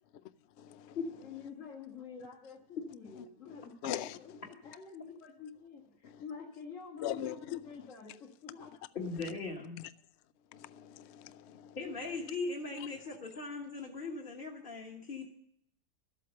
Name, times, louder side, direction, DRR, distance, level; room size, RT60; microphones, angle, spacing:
voice 1, 0.6-1.0 3.8-4.1 7.0-7.6 10.5-11.7, left 11 dB, 70° left, 0.6 m, -39 dB
voice 2, 1.2-8.7 9.1-9.3, left 6 dB, 50° left, 2.1 m, -48 dB
voice 3, 8.9-9.8 11.7-15.3, left 3 dB, 35° left, 1.6 m, -39 dB
13.0 x 8.5 x 6.5 m
omnidirectional pair, 1.8 m